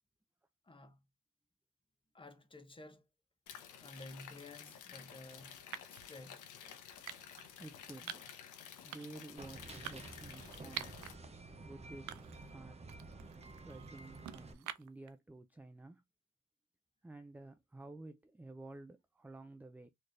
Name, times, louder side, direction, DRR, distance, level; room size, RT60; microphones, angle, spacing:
voice 1, 0.6-1.0 2.1-3.0 3.8-5.6 5.9-6.5, left 2 dB, 15° left, 0.9 m, -53 dB
sound 1, 3.5-11.1, left 8 dB, 85° left, 1.0 m, -53 dB
sound 2, 4.4-4.7 5.7-6.1 7.1-7.5 8.1-8.4 8.9-9.3 9.9-11.1 11.5-11.6 12.1-12.5 12.9-15.1, right 12 dB, 75° right, 0.5 m, -47 dB
voice 2, 7.6-8.3 8.8-11.0 11.6-12.1 12.5-12.8 13.6-16.0 17.0-19.9, right 2 dB, 5° right, 0.4 m, -52 dB
sound 3, 9.4-14.5, right 3 dB, 20° right, 0.8 m, -51 dB
4.2 x 3.1 x 2.7 m
cardioid pair, 90°, 30 cm